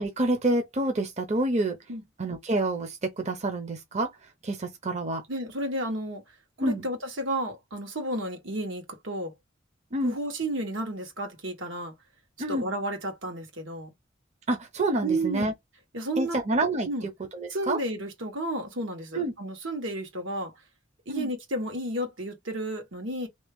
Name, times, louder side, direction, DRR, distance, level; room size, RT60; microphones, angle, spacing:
voice 1, 0.0-1.8 2.2-4.1 4.4-5.2 6.6-6.8 9.9-10.2 12.4-12.7 14.5-15.5 16.2-16.9 17.3-17.8 19.1-19.3 21.1-21.3, right 2 dB, 35° right, 0.7 m, -28 dB
voice 2, 5.3-6.2 6.6-9.3 10.0-11.9 12.5-13.9 15.0-15.5 15.9-16.4 16.9-17.1 17.5-20.5 21.1-23.3, right 1 dB, 85° right, 1.4 m, -32 dB
3.3 x 2.8 x 3.5 m
head